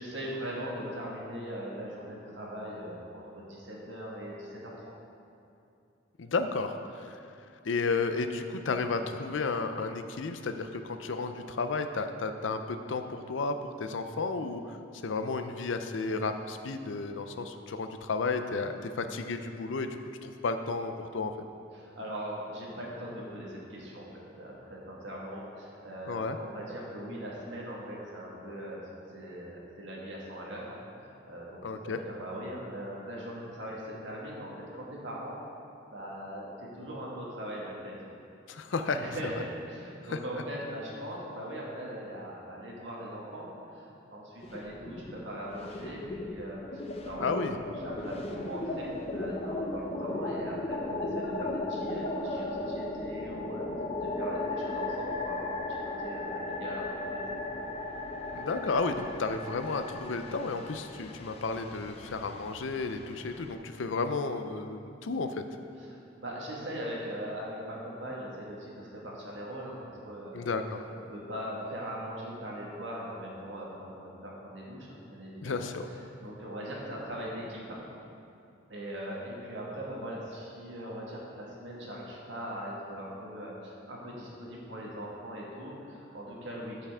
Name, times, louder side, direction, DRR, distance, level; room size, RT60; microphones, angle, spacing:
voice 1, 0.0-4.7 21.7-28.8 29.1-35.4 35.9-37.9 38.9-53.6 54.0-55.5 55.8-57.4 65.7-70.4 70.9-77.8 78.7-86.9, equal, 70° right, -4 dB, 1.8 m, -40 dB
voice 2, 6.2-7.2 7.6-14.8 15.0-19.9 20.2-21.3 26.1-26.4 31.6-32.0 38.5-39.0 47.2-47.6 58.3-65.4 70.3-70.8 75.4-75.9, left 4 dB, 75° left, 8 dB, 0.5 m, -32 dB
sound 1, 44.4-45.2 45.5-63.6, left 2 dB, 30° left, 0.5 m, -36 dB
12.5 x 5.6 x 3.6 m, 2.6 s
head